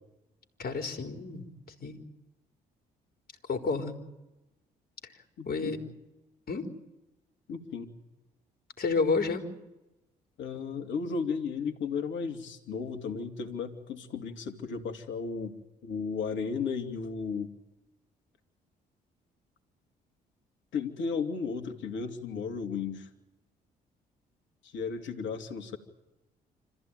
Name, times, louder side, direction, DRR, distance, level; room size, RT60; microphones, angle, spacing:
voice 1, 0.6-1.5 1.8-2.0 3.5-4.0 5.4-5.8 6.5-6.7 8.8-9.5, left 4 dB, 50° left, 5 dB, 4.4 m, -30 dB
voice 2, 5.4-5.8 7.5-7.9 10.4-15.5 15.8-17.5 20.7-23.1 24.6-25.8, left 5 dB, 65° left, 5 dB, 2.9 m, -34 dB
26.5 x 15.0 x 9.4 m, 0.97 s
hypercardioid pair, 50°, 20 cm